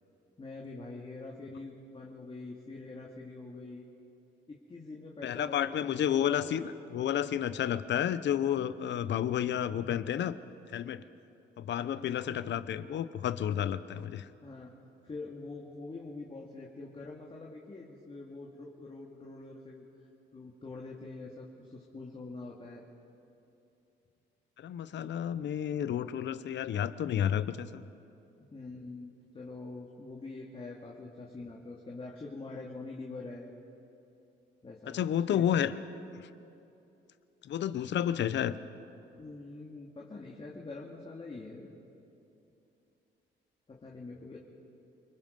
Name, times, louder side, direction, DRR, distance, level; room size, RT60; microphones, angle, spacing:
voice 1, 0.4-3.9 4.5-6.6 11.7-12.4 14.4-14.7 15.0-19.8 20.3-22.8 25.0-25.1 28.5-33.5 34.6-35.0 35.3-35.5 39.2-41.7 43.7-44.4, left 3 dB, 30° left, -2 dB, 2.3 m, -45 dB
voice 2, 5.2-10.4 10.7-11.0 11.6-14.3 24.6-27.8 34.9-35.7 36.1-36.3 37.4-38.5, left 10 dB, 65° left, 14 dB, 0.8 m, -31 dB
28.0 x 19.5 x 5.4 m, 2.8 s
cardioid pair, 90°, 20 cm